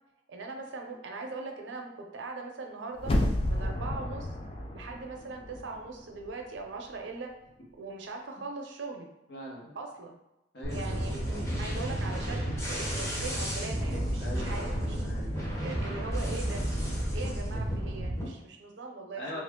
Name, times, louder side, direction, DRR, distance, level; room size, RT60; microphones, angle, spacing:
voice 1, 0.3-3.1 3.5-4.3 4.7-7.3 7.8-9.1 9.8-10.2 10.7-15.1 15.6-16.6 17.1-19.4, right 3 dB, 70° right, 3 dB, 0.6 m, -40 dB
sound 1, 3.0-5.9 6.3-6.4, left 1 dB, 30° left, 0.4 m, -31 dB
voice 2, 9.3-9.8 10.5-11.0 14.2-14.7 15.0-15.6 19.2-19.4, left 1 dB, 65° left, -3 dB, 1.0 m, -41 dB
sound 2, 10.6-18.3, equal, 15° left, 0.8 m, -32 dB
3.1 x 2.5 x 3.5 m, 0.90 s
head